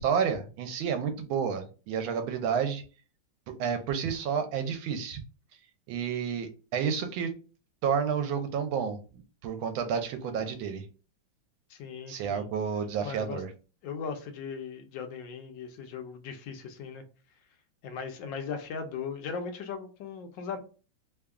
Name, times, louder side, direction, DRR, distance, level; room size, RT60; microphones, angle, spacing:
voice 1, 0.0-2.8 3.5-5.2 5.9-7.3 7.8-10.8 12.1-13.5, right 7 dB, 80° right, 1.4 m, -30 dB
voice 2, 11.7-12.5 13.0-13.4 13.8-17.0 17.8-20.6, left 5 dB, 75° left, 1.2 m, -38 dB
3.4 x 2.3 x 3.5 m
omnidirectional pair, 2.2 m